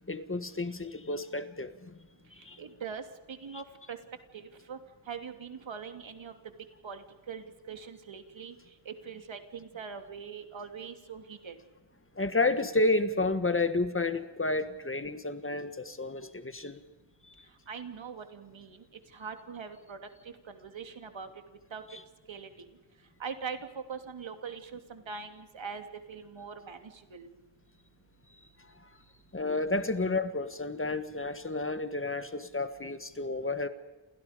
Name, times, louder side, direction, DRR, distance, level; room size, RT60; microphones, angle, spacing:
voice 1, 0.1-1.9 2.3-2.6 3.5-3.6 12.1-16.8 28.8-28.9 29.3-33.7, left 2 dB, 25° left, 10 dB, 1.6 m, -31 dB
voice 2, 2.6-4.0 4.3-4.8 5.1-6.3 6.8-8.6 8.8-11.5 17.7-18.8 19.1-20.0 20.5-21.3 21.7-21.8 22.3-22.7 23.2-27.3, right 6 dB, 75° right, 6 dB, 2.9 m, -42 dB
29.0 x 28.5 x 5.2 m, 1.2 s
wide cardioid pair, 135°, 46 cm